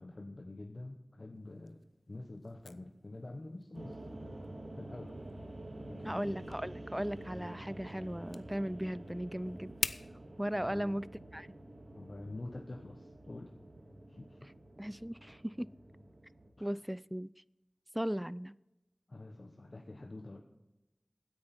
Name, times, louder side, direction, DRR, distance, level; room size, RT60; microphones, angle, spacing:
voice 1, 0.0-5.2 5.8-6.5 10.7-11.0 11.9-13.5 14.1-14.5 16.6-16.8 19.1-20.4, left 2 dB, 55° left, 4 dB, 1.0 m, -47 dB
sound 1, 1.3-10.1, left 3 dB, 85° left, 0.5 m, -47 dB
sound 2, 3.7-16.5, right 1 dB, 80° right, 2.1 m, -48 dB
voice 2, 6.0-9.7 10.4-11.1 11.3-11.5 14.8-15.7 16.6-17.3 17.9-18.5, equal, 10° right, 20 dB, 0.4 m, -37 dB
16.5 x 9.8 x 4.3 m, 1.0 s
wide cardioid pair, 50°, 0 cm